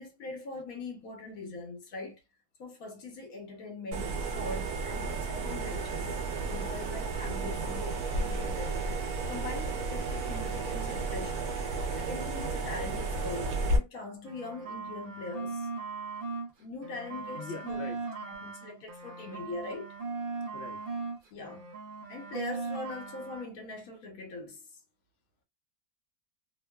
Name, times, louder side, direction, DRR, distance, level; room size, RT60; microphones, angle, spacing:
voice 1, 0.0-2.2 2.6-6.1 6.5-8.8 9.3-11.5 11.9-15.7 16.6-17.8 18.3-20.0 21.3-21.7 22.1-24.6, left 3 dB, 80° left, 1.3 m, -42 dB
sound 1, 3.9-13.8, right 3 dB, 85° right, 1.2 m, -33 dB
sound 2, 14.2-16.5 16.8-21.2 21.4-23.5, right 4 dB, 50° right, 0.6 m, -39 dB
voice 2, 17.3-18.0 20.5-21.0, left 4 dB, 60° left, 0.8 m, -42 dB
2.9 x 2.1 x 2.2 m
omnidirectional pair, 1.5 m